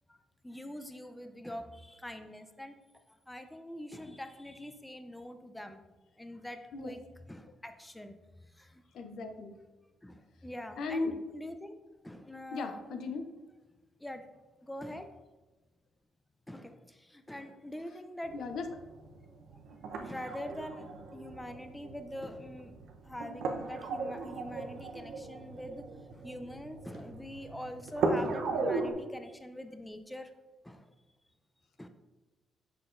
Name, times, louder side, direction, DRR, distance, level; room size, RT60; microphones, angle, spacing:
voice 1, 0.4-2.8 3.1-5.8 6.2-7.0 7.3-8.2 8.5-8.8 10.0-11.8 12.0-12.9 14.0-14.3 14.6-15.1 16.5-18.4 19.9-22.7 23.0-25.9 26.1-30.3 30.6-30.9 31.8-31.9, left 1 dB, 10° left, 8 dB, 0.4 m, -44 dB
voice 2, 8.9-9.5 10.8-11.1 12.5-13.2 18.3-18.6, left 3 dB, 70° left, 6 dB, 0.6 m, -36 dB
sound 1, 18.2-28.9, right 3 dB, 80° right, 0.7 m, -37 dB
6.6 x 5.8 x 2.5 m, 1.2 s
cardioid pair, 90°, 0 cm